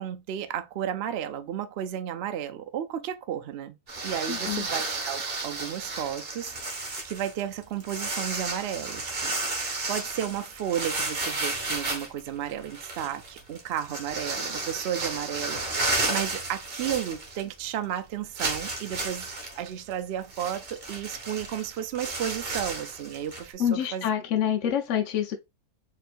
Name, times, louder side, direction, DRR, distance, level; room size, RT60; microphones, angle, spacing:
voice 1, 0.0-3.8 4.0-9.4 9.9-19.3 19.6-24.1 24.6-24.7, right 10 dB, 75° right, 0.5 m, -33 dB
sound 1, 3.9-17.7 17.9-18.0 18.4-23.5, right 2 dB, 40° right, 1.2 m, -33 dB
voice 2, 4.3-4.7 23.6-25.4, left 9 dB, 65° left, 0.8 m, -27 dB
4.3 x 3.0 x 2.5 m
omnidirectional pair, 1.6 m